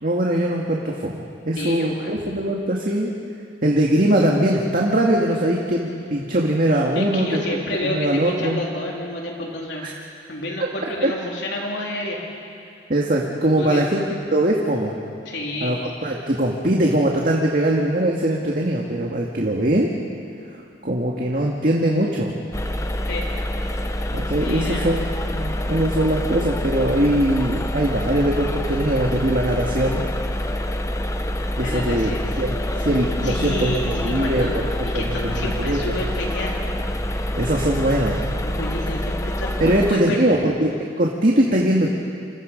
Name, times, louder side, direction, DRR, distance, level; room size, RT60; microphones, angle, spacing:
voice 1, 0.0-3.1 3.6-7.4 7.8-8.6 9.8-9.9 11.0-11.1 12.9-14.0 14.3-14.9 15.6-19.9 20.8-22.4 24.1-25.1 25.3-30.0 31.6-32.6 32.8-34.6 34.9-35.8 37.3-38.3 39.6-40.7 41.0-41.9, right 1 dB, 50° right, -1 dB, 2.1 m, -21 dB
voice 2, 1.6-2.1 7.0-9.9 10.3-12.2 13.6-13.9 15.3-15.8 23.1-23.4 23.9-24.1 24.4-24.9 31.6-32.2 33.2-36.6 38.4-40.4, left 1 dB, 70° left, -2 dB, 3.6 m, -30 dB
sound 1, 22.5-39.9, left 1 dB, 15° left, 1.0 m, -26 dB
29.5 x 27.0 x 5.4 m, 2.4 s
head